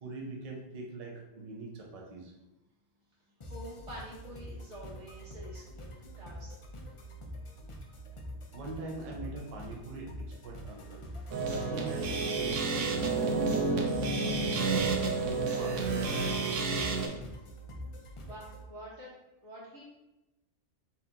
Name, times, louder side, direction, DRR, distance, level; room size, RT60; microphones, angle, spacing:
voice 1, 0.0-2.3 8.5-11.0 11.7-13.7 14.4-16.5, right 3 dB, 40° right, -2 dB, 0.7 m, -43 dB
sound 1, 3.4-18.6, equal, 40° left, 0.4 m, -45 dB
voice 2, 3.4-6.5 18.2-19.1 19.4-19.9, equal, 75° right, -6 dB, 1.9 m, -47 dB
sound 2, 11.3-17.1, right 4 dB, 90° right, 1.1 m, -30 dB
4.3 x 2.8 x 3.9 m, 0.96 s
omnidirectional pair, 1.2 m